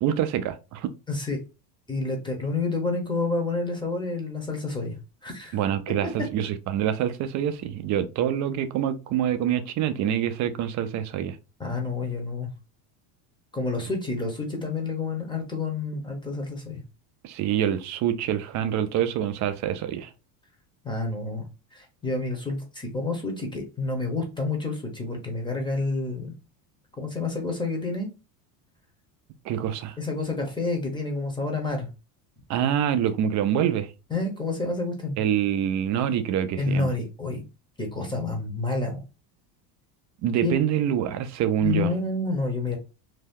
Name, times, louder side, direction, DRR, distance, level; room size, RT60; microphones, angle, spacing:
voice 1, 0.0-0.9 5.5-11.4 17.2-20.1 29.4-30.0 32.5-33.9 35.2-36.9 40.2-41.9, right 10 dB, 45° right, 0.4 m, -26 dB
voice 2, 1.1-1.4 1.9-5.6 11.6-12.5 13.5-16.8 20.8-21.4 21.7-26.3 27.0-28.1 30.0-31.9 34.1-35.2 36.6-37.4 37.8-39.0 40.4-40.5 41.6-42.8, left 3 dB, 10° left, 0.7 m, -29 dB
2.7 x 2.1 x 3.5 m
cardioid pair, 130°, 43 cm